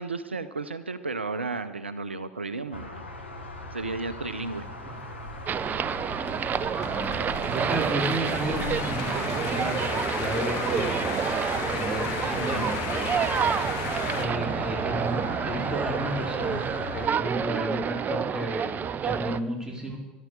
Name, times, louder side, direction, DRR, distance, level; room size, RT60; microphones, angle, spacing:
voice 1, 0.0-3.0 3.7-4.7, right 3 dB, 85° right, 13 dB, 0.5 m, -33 dB
sound 1, 2.7-17.1, left 2 dB, 85° left, 1.5 m, -38 dB
sound 2, 5.0-14.3, left 6 dB, 55° left, 1.9 m, -36 dB
sound 3, 5.5-19.4, right 7 dB, 30° right, 0.5 m, -29 dB
voice 2, 6.7-13.9 14.1-16.6 16.9-20.0, right 1 dB, 10° right, 0 dB, 3.9 m, -33 dB
13.0 x 12.0 x 6.5 m, 1.0 s
figure-of-eight pair, 70°, 6 cm